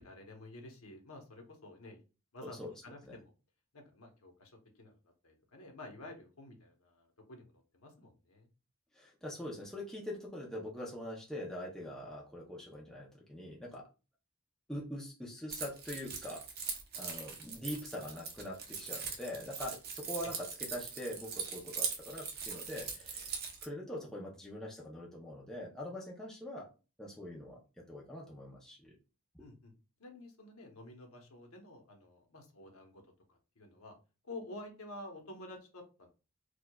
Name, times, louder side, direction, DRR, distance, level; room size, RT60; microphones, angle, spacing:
voice 1, 0.0-2.0 2.3-2.6 2.8-3.3 3.7-5.0 5.2-8.5 20.2-20.3 29.4-29.7 30.0-33.0 33.3-33.9 34.2-36.1, left 2 dB, 75° left, 3 dB, 0.9 m, -50 dB
voice 2, 2.4-2.7 3.0-3.1 8.9-13.9 14.7-16.4 16.9-26.7 27.0-28.9 29.3-29.4, left 1 dB, 5° left, -3 dB, 0.5 m, -43 dB
Keys jangling, 15.5-23.6, right 6 dB, 45° right, 0.7 m, -41 dB
4.5 x 2.3 x 2.2 m, 0.33 s
head